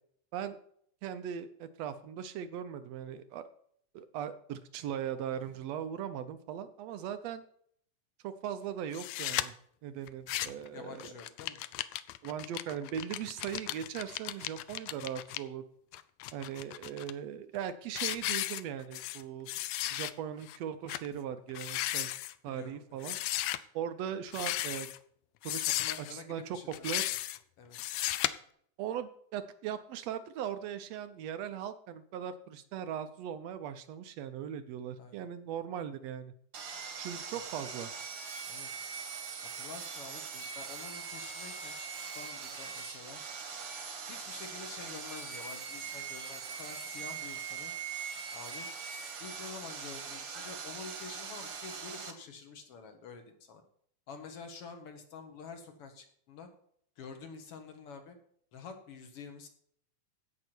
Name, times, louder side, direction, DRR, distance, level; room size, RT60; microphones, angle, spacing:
voice 1, 1.0-3.4 3.9-7.4 8.2-9.5 9.8-11.0 12.2-15.6 16.3-19.5 19.9-22.1 22.4-23.2 23.7-24.9 25.4-25.7 26.0-26.6 26.8-27.0 28.8-36.3 37.0-37.9, right 9 dB, 75° right, 11 dB, 1.6 m, -39 dB
sound 1, 8.9-9.5 10.1-10.7 11.0-15.4 15.9-17.1 17.6-17.7 18.0-19.2 19.5-20.1 20.5-20.6 20.9-21.1 21.5-22.3 23.0-23.6 24.3-25.0 25.4-26.1 26.7-27.4 27.7-28.3, left 15 dB, 80° left, 1.5 m, -35 dB
voice 2, 10.7-11.6 22.5-23.0 25.6-27.1 27.6-28.0 35.0-35.2 38.5-38.9 39.5-43.2 44.0-47.7 48.3-48.7 49.2-53.6 54.1-56.5 57.0-58.2 58.5-59.5, left 5 dB, 55° left, 6 dB, 2.1 m, -48 dB
Sawing, 36.5-52.1, right 6 dB, 50° right, 1.7 m, -42 dB
16.0 x 6.1 x 4.5 m, 0.65 s
omnidirectional pair, 3.5 m